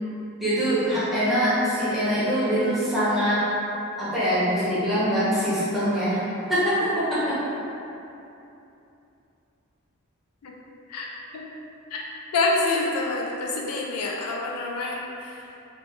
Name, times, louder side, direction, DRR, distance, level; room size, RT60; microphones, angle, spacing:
voice 1, 0.4-3.4 4.0-6.2 6.5-7.4, equal, ahead, -13 dB, 1.0 m, -23 dB
voice 2, 10.9-11.4 11.9-12.0 12.3-15.4, left 3 dB, 90° left, -2 dB, 0.4 m, -27 dB
3.5 x 2.5 x 3.0 m, 2.9 s
head